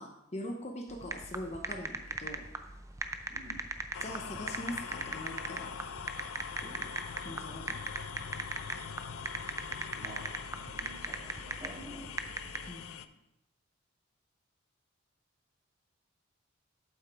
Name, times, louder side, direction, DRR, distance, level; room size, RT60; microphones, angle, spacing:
voice 1, 0.0-2.5 4.0-5.8 6.6-7.7 12.7-13.1, left 1 dB, 30° left, 2 dB, 0.8 m, -42 dB
sound 1, 0.9-12.7, right 3 dB, 15° right, 0.4 m, -38 dB
sound 2, 3.9-13.1, left 7 dB, 75° left, 0.4 m, -43 dB
voice 2, 10.0-12.2, right 1 dB, 30° right, -4 dB, 2.3 m, -49 dB
8.6 x 7.7 x 3.5 m, 0.87 s
head